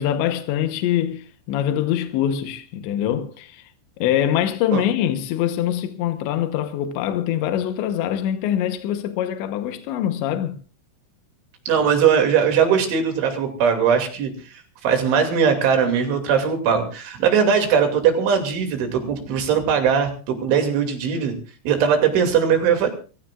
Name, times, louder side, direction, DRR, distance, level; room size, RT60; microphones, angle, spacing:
voice 1, 0.0-3.6 4.0-10.6, left 11 dB, 80° left, 3.3 m, -24 dB
voice 2, 11.7-14.3 14.8-21.4 21.6-22.9, right 7 dB, 85° right, 5.0 m, -20 dB
26.0 x 15.0 x 2.5 m
omnidirectional pair, 5.3 m